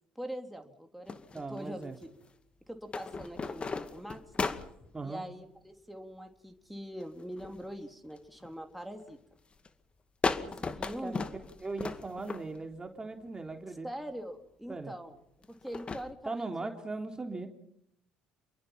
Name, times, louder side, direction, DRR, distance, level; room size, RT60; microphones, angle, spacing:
voice 1, 0.2-2.1 2.7-4.6 5.0-9.2 10.4-11.3 13.8-15.2 15.5-16.8, equal, ahead, 3 dB, 3.5 m, -43 dB
sound 1, 1.1-2.0 2.9-4.9 7.0-7.7 8.1-8.5 9.1-9.3 9.7-9.8 10.2-12.7 13.5-13.6 15.4-16.1, left 4 dB, 30° left, 2.2 m, -35 dB
voice 2, 1.3-2.0 4.9-5.2 11.0-11.2 11.6-13.9 14.7-14.9 16.3-17.5, right 3 dB, 20° right, 4 dB, 3.4 m, -39 dB
29.5 x 22.5 x 5.8 m, 0.78 s
hypercardioid pair, 60°, 3 cm